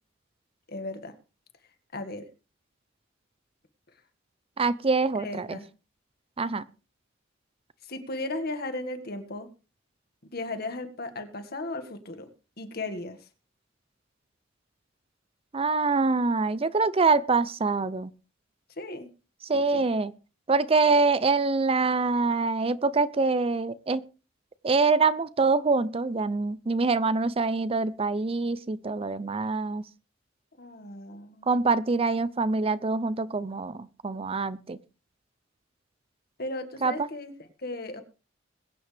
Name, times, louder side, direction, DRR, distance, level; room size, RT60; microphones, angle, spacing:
voice 1, 0.7-1.1 1.9-2.2 5.2-5.7 7.9-9.5 10.2-12.3 12.6-13.2 18.8-19.1 19.5-19.8 30.6-31.5 36.4-38.0, left 2 dB, 55° left, 8 dB, 1.9 m, -36 dB
voice 2, 4.6-5.6 6.4-6.6 15.5-18.1 19.5-20.1 20.5-24.0 24.6-29.8 31.5-34.8 36.8-36.9, right 4 dB, 30° right, 16 dB, 0.5 m, -25 dB
21.5 x 9.2 x 3.4 m, 0.33 s
head